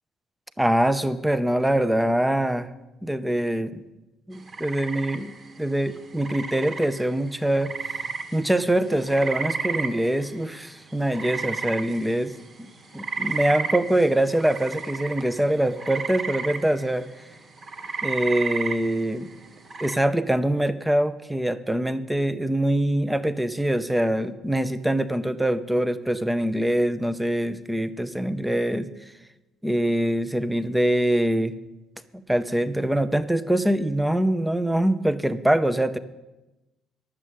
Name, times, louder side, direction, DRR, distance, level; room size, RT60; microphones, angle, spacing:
voice 1, 0.6-2.7 3.0-3.8 4.3-5.3 5.6-7.7 8.3-12.3 12.9-17.1 18.0-19.3 19.8-28.9 29.6-31.5 32.3-36.0, right 1 dB, 5° right, 12 dB, 0.7 m, -24 dB
sound 1, 4.3-19.9, right 5 dB, 40° right, 1.4 m, -33 dB
11.0 x 7.5 x 8.3 m, 1.0 s
cardioid pair, 95°, 0 cm